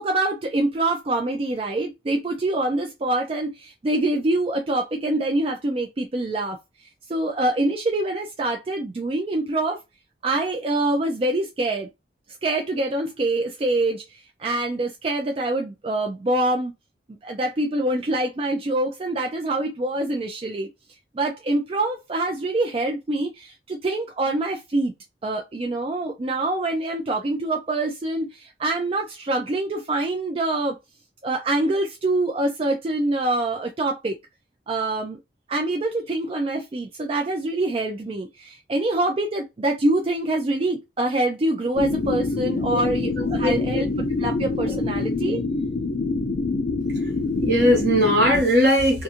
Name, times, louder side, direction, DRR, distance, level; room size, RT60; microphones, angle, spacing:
voice 1, 0.0-9.8 10.2-11.9 12.4-16.7 17.2-20.7 21.1-24.9 25.2-30.8 31.2-34.2 34.7-35.2 35.5-45.4, right 2 dB, 30° right, 0.4 m, -25 dB
sound 1, 41.8-48.4, left 3 dB, 55° left, 0.4 m, -25 dB
voice 2, 43.2-43.6 44.6-44.7 46.9-47.1 47.4-49.0, equal, 60° right, 1.3 m, -19 dB
2.5 x 2.4 x 2.7 m
head